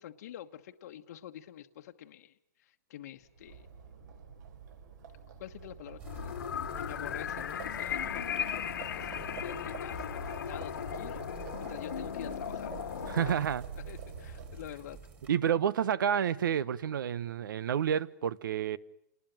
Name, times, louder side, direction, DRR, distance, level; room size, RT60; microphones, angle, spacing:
voice 1, 0.0-3.7 5.4-6.4 6.8-13.2 13.8-15.0, left 11 dB, 55° left, 1.2 m, -47 dB
Livestock farm animals working animals, 3.2-14.9, right 6 dB, 65° right, 5.8 m, -47 dB
sound 1, 6.0-13.3, left 8 dB, 90° left, 1.8 m, -37 dB
sound 2, 6.0-15.3, right 5 dB, 15° right, 2.9 m, -51 dB
voice 2, 13.1-13.6 15.3-18.8, right 9 dB, 85° right, 1.1 m, -29 dB
29.5 x 20.0 x 9.2 m
supercardioid pair, 165°, 11 cm